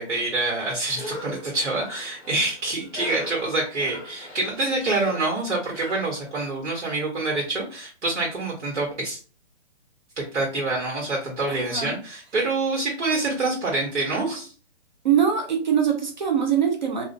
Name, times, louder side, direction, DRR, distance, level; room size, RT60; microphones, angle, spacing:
voice 1, 0.0-9.2 10.2-14.5, right 2 dB, 75° right, -2 dB, 1.2 m, -26 dB
Cough, 0.9-6.7, equal, 5° left, 0.6 m, -40 dB
voice 2, 11.5-12.0 15.0-17.0, right 8 dB, 40° right, 2 dB, 0.6 m, -23 dB
2.4 x 2.0 x 2.6 m, 0.37 s
hypercardioid pair, 170°, 36 cm